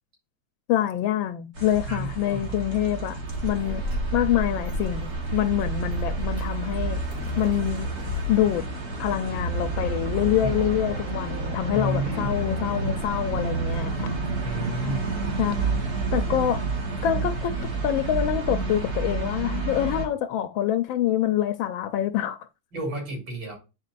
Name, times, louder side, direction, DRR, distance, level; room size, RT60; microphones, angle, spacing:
voice 1, 0.7-3.8 4.1-7.0 7.4-7.9 8.3-8.7 9.0-14.1 15.4-15.8 16.1-16.6 17.0-22.5, left 11 dB, 85° left, 1.4 m, -26 dB
sound 1, 1.5-20.1, right 3 dB, 50° right, 2.1 m, -30 dB
voice 2, 1.9-2.5 10.4-11.0 11.7-12.3 14.4-15.1 22.7-23.5, right 1 dB, 70° right, 4.0 m, -32 dB
Child speech kid speaking, 3.3-8.5, left 1 dB, 35° right, 2.3 m, -35 dB
sound 2, 7.1-13.0, left 8 dB, 65° left, 1.2 m, -41 dB
9.6 x 4.5 x 2.5 m
omnidirectional pair, 2.1 m